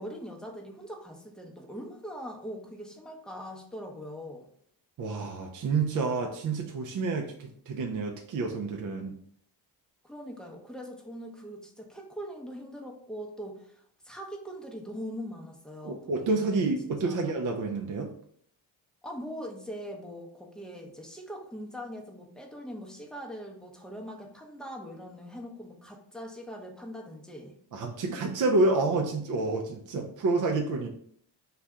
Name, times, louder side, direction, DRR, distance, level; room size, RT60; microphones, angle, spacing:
voice 1, 0.0-4.5 10.0-17.2 19.0-27.5, equal, ahead, 1 dB, 0.6 m, -42 dB
voice 2, 5.0-9.1 15.8-18.1 27.7-30.9, right 3 dB, 40° right, 2 dB, 0.5 m, -29 dB
2.6 x 2.4 x 3.3 m, 0.63 s
supercardioid pair, 60°, 50 cm